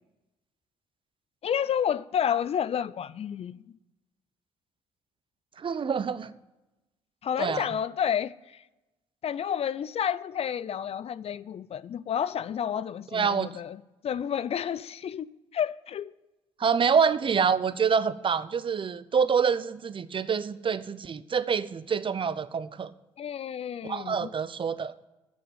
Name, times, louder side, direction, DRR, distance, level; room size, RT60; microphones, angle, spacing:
voice 1, 1.4-3.8 7.2-8.6 9.2-16.1 23.2-24.3, left 8 dB, 50° left, 0.5 m, -30 dB
voice 2, 5.6-6.3 7.4-7.7 13.1-13.5 16.6-22.9 23.9-24.9, right 6 dB, 40° right, 0.7 m, -26 dB
9.4 x 6.7 x 8.9 m
hypercardioid pair, 45°, 13 cm